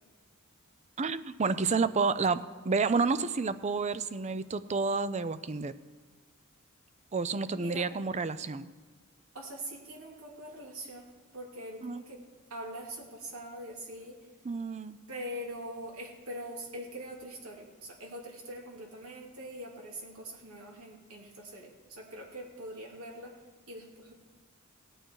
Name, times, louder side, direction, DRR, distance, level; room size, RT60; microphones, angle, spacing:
voice 1, 1.0-2.4 2.6-5.7 7.1-8.7 11.8-12.0 14.5-15.0, right 4 dB, 35° right, 14 dB, 0.5 m, -30 dB
voice 2, 7.5-7.9 9.3-12.2 12.5-14.3 15.1-23.4 23.7-24.1, equal, 80° right, -1 dB, 2.8 m, -43 dB
17.5 x 9.0 x 4.7 m, 1.4 s
head